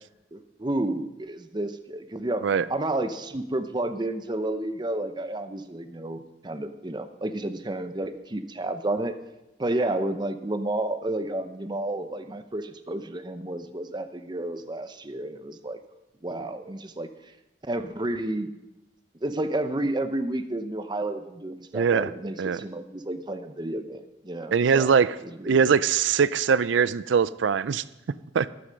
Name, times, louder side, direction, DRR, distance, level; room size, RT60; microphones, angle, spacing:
voice 1, 0.3-9.2 9.6-15.8 16.2-17.1 17.6-18.6 19.2-24.9 25.2-25.7, right 1 dB, 25° right, 9 dB, 0.7 m, -31 dB
voice 2, 21.7-22.1 22.4-22.6 24.5-25.2 25.4-27.8 28.3-28.5, right 6 dB, 80° right, 17 dB, 0.4 m, -22 dB
13.0 x 10.0 x 5.2 m, 0.97 s
head